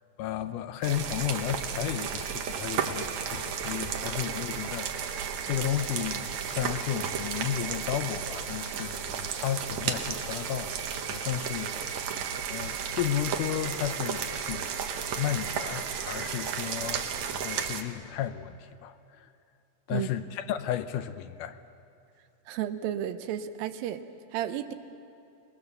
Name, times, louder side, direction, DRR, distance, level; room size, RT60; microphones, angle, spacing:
voice 1, 0.2-10.7 11.1-12.1 12.5-14.7 15.2-19.3 19.9-21.6, left 11 dB, 75° left, 10 dB, 2.1 m, -33 dB
sound 1, 0.8-17.8, right 7 dB, 65° right, 2.1 m, -33 dB
voice 2, 22.5-24.0 24.3-24.7, right 11 dB, 90° right, 10 dB, 2.6 m, -32 dB
26.0 x 20.5 x 6.8 m, 2.7 s
omnidirectional pair, 4.0 m